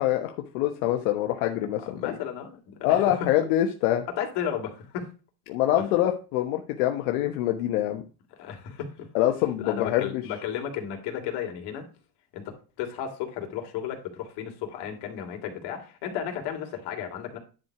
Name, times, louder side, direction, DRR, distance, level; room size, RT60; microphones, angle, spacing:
voice 1, 0.0-2.2 2.8-4.0 5.5-8.0 9.1-10.2, left 13 dB, 85° left, 4 dB, 1.2 m, -25 dB
voice 2, 1.9-3.2 3.4-3.6 4.2-5.1 5.8-5.9 8.4-9.1 9.6-11.8 12.3-12.4 12.8-17.4, left 9 dB, 65° left, 3 dB, 3.1 m, -34 dB
10.5 x 4.6 x 4.8 m, 0.33 s
cardioid pair, 130°, 43 cm